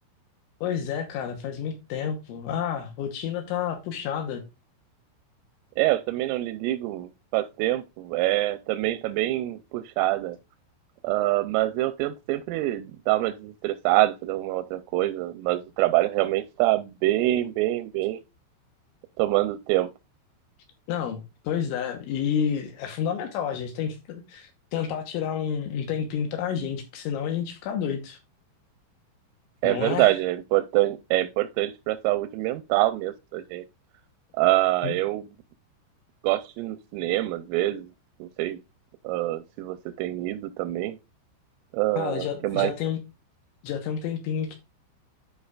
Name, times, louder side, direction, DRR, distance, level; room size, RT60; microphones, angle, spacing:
voice 1, 0.6-4.4 20.9-28.2 29.6-30.1 34.8-34.9 42.0-43.0 43.6-44.6, left 8 dB, 80° left, 3.2 m, -30 dB
voice 2, 5.8-10.4 11.0-18.2 19.2-19.9 29.6-33.6 34.4-35.3 36.2-37.9 38.2-38.6 39.0-41.0 41.7-42.7, right 16 dB, 85° right, 3.2 m, -25 dB
13.0 x 4.9 x 2.4 m
omnidirectional pair, 5.8 m